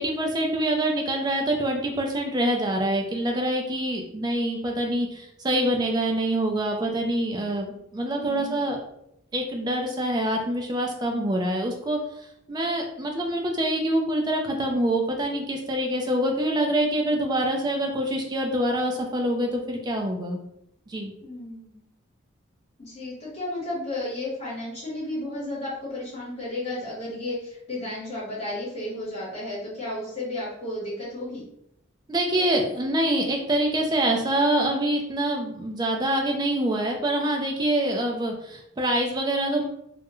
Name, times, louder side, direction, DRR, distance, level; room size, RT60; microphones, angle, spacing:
voice 1, 0.0-8.8 9.3-20.4 20.9-21.1 32.1-39.6, right 1 dB, 20° right, 2 dB, 0.3 m, -25 dB
voice 2, 8.1-8.6 21.2-21.8 22.8-31.4, left 1 dB, 30° left, -8 dB, 1.1 m, -33 dB
2.3 x 2.1 x 2.9 m, 0.77 s
head